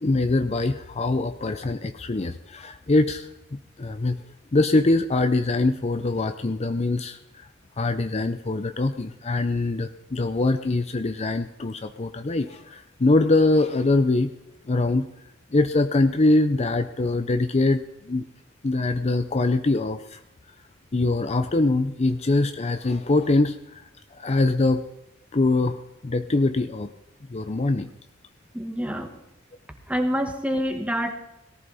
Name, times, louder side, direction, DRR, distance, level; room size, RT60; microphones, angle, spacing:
voice 1, 0.0-4.2 4.5-7.2 7.8-14.3 14.7-15.1 15.5-17.8 18.1-18.2 18.6-20.2 20.9-23.8 24.2-24.8 25.3-25.8 26.0-26.9 27.3-27.9, left 2 dB, 35° left, 9 dB, 0.6 m, -23 dB
voice 2, 28.5-29.1 29.9-31.1, equal, 5° right, 5 dB, 1.6 m, -26 dB
18.5 x 14.0 x 4.1 m, 0.90 s
head